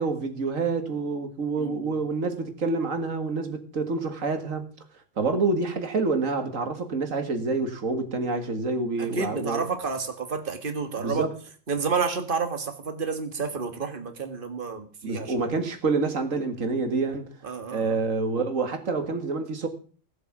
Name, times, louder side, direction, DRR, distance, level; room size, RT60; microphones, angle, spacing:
voice 1, 0.0-4.6 5.2-9.6 11.0-11.3 15.0-17.3 17.7-19.7, right 3 dB, 85° right, 2.2 m, -27 dB
voice 2, 1.6-2.0 9.0-11.2 11.7-15.5 17.4-18.0, right 5 dB, 45° right, 1.8 m, -30 dB
17.0 x 7.9 x 6.0 m
omnidirectional pair, 1.3 m